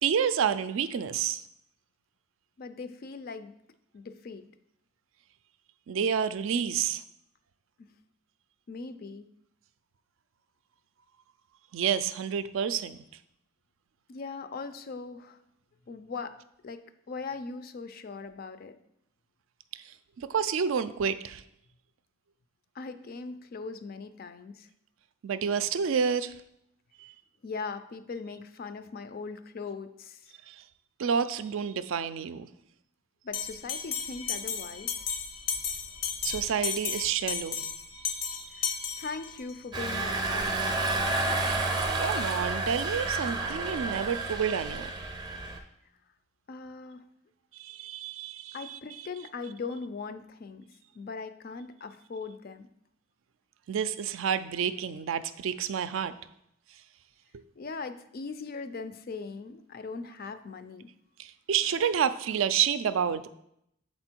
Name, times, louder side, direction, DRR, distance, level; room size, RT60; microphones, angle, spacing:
voice 1, 0.0-1.4 5.9-7.0 11.7-13.0 20.2-21.4 25.2-26.3 27.0-27.1 30.5-30.6 31.0-32.5 36.2-37.7 38.0-38.5 42.0-44.9 47.6-48.8 53.7-56.2 61.2-63.3, right 7 dB, 70° right, 13 dB, 0.4 m, -29 dB
voice 2, 2.6-3.5 3.9-4.4 8.7-9.3 14.1-15.4 15.9-16.4 16.6-18.8 22.7-24.7 27.4-30.3 33.2-35.0 38.6-40.8 46.5-47.0 48.5-50.7 50.9-52.7 57.6-60.9, left 4 dB, 45° left, 10 dB, 0.4 m, -40 dB
Bell, 33.3-39.6, left 6 dB, 70° left, 0.7 m, -34 dB
Engine, 39.7-45.6, right 2 dB, 20° right, 0.5 m, -30 dB
6.8 x 4.4 x 4.4 m, 0.77 s
head